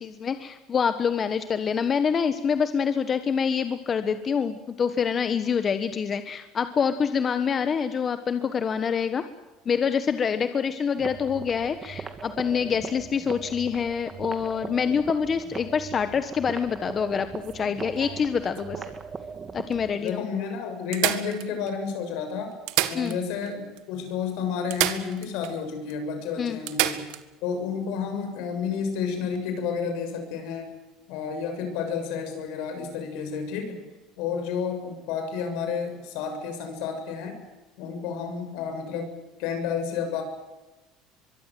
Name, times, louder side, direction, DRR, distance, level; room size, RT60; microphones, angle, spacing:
voice 1, 0.0-9.2 9.6-18.8 19.5-20.3 22.9-23.2 26.4-26.6, left 6 dB, 30° left, 10 dB, 1.4 m, -26 dB
sound 1, 11.0-20.0, right 5 dB, 25° right, 2.4 m, -39 dB
sound 2, 17.4-19.0 19.7-19.8 20.1-20.2 20.9-21.9 22.5-23.5 23.8-23.9 24.7-25.6 25.9-26.0 26.7-27.2 29.2-29.4, right 15 dB, 80° right, 1.8 m, -30 dB
voice 2, 20.0-22.5 22.9-27.1 27.4-30.7 31.1-33.8 34.2-37.4 37.8-40.2, left 6 dB, 75° left, 6 dB, 6.7 m, -31 dB
23.5 x 23.5 x 7.8 m, 1.1 s
cardioid pair, 120°, 0 cm